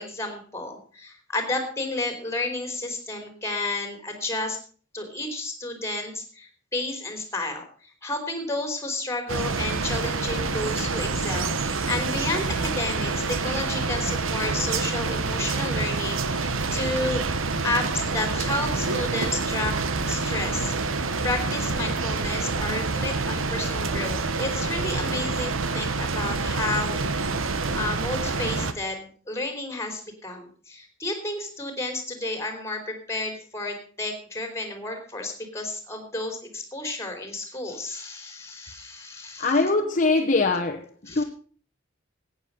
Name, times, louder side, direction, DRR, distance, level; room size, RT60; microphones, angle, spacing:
voice 1, 0.0-4.6 4.9-17.2 17.6-19.7 20.1-21.0 21.2-27.4 27.7-39.6 41.1-41.2, left 2 dB, 15° left, 5 dB, 3.4 m, -31 dB
sound 1, 9.3-28.7, right 3 dB, 85° right, 1.2 m, -27 dB
voice 2, 39.4-41.2, left 3 dB, 40° left, 2 dB, 1.1 m, -22 dB
14.5 x 9.6 x 5.4 m, 0.42 s
head